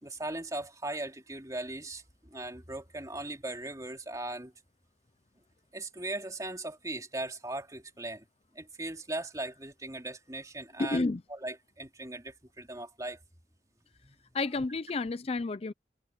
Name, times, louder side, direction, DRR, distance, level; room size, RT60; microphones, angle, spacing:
voice 1, 0.0-2.0 2.3-4.5 5.7-8.2 8.5-11.0 11.3-13.2 14.0-14.2, right 2 dB, 20° right, 2.7 m, -38 dB
voice 2, 10.8-11.2 14.3-15.7, left 3 dB, 35° left, 0.5 m, -30 dB
head